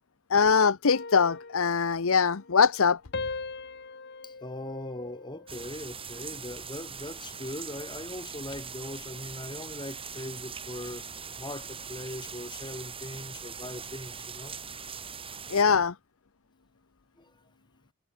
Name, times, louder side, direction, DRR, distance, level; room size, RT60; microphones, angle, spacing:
voice 1, 0.3-3.0 15.5-15.9, left 5 dB, 70° left, 0.8 m, -22 dB
sound 1, 0.9-2.8 3.1-5.7 6.2-6.5, left 4 dB, 50° left, 2.1 m, -41 dB
voice 2, 4.2-11.1 11.4-14.6 17.2-17.4, left 1 dB, 20° left, 4.0 m, -40 dB
sound 2, 5.5-15.6, right 6 dB, 25° right, 4.9 m, -41 dB
head